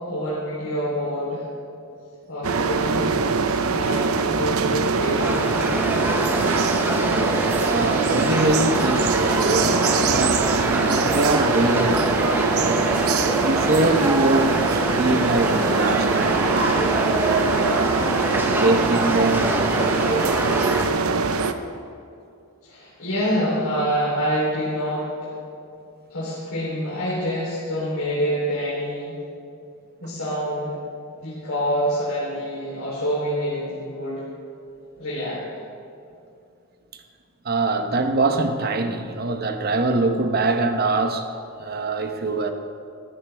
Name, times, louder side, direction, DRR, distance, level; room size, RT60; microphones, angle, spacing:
voice 1, 0.1-1.5 2.3-6.5 22.6-25.3 26.1-29.1 30.0-30.8 31.2-34.2 35.0-35.4, equal, 70° left, -9 dB, 3.5 m, -27 dB
sound 1, 2.4-21.5, right 4 dB, 75° right, 0.7 m, -23 dB
sound 2, 5.2-20.9, right 1 dB, 10° right, 1.0 m, -25 dB
voice 2, 7.6-12.9 13.4-17.9 18.6-19.6 36.9-37.0 37.4-41.3 41.6-42.5, right 2 dB, 45° right, 6 dB, 1.0 m, -24 dB
17.5 x 14.0 x 3.4 m, 2.6 s
head